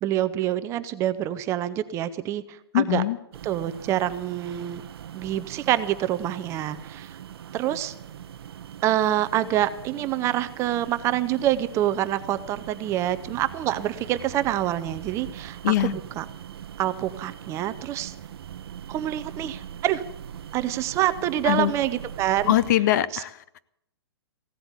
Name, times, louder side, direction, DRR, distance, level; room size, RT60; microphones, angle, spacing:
voice 1, 0.0-3.0 3.4-4.8 5.1-7.2 7.5-7.9 8.8-16.2 16.8-18.1 18.9-20.0 20.5-22.5 23.1-23.2, right 12 dB, 20° right, 12 dB, 0.7 m, -26 dB
voice 2, 2.7-3.2 15.6-15.9 21.5-21.7 22.5-23.6, left 13 dB, 45° left, 17 dB, 0.7 m, -22 dB
sound 1, 3.3-22.7, right 9 dB, 65° right, 0.8 m, -41 dB
16.0 x 8.0 x 9.6 m, 0.77 s
hypercardioid pair, 150°, 14 cm